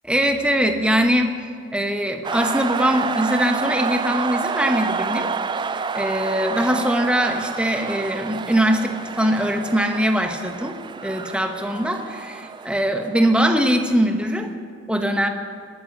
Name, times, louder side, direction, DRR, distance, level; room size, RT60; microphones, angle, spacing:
voice 1, 0.0-1.4 1.7-5.3 5.9-14.5 14.9-15.3, equal, 5° right, 5 dB, 1.0 m, -22 dB
sound 1, 2.2-13.9, right 5 dB, 20° right, 0.3 m, -29 dB
20.0 x 9.9 x 6.6 m, 2.1 s
head